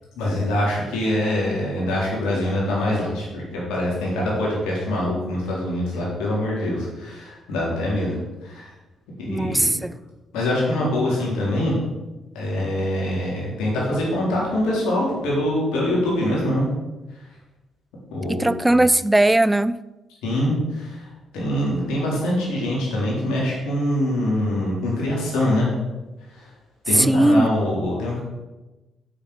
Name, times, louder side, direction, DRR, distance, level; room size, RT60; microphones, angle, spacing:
voice 1, 0.2-8.7 9.2-9.7 10.3-11.7 12.3-16.7 18.1-18.8 20.2-21.1 21.3-25.7 26.3-26.5 26.9-28.2, left 1 dB, 75° left, 3.8 m, -24 dB
voice 2, 9.3-9.9 18.3-19.9 26.9-27.5, right 1 dB, 15° right, 0.4 m, -18 dB
7.2 x 7.0 x 6.7 m
hypercardioid pair, 45°, 0 cm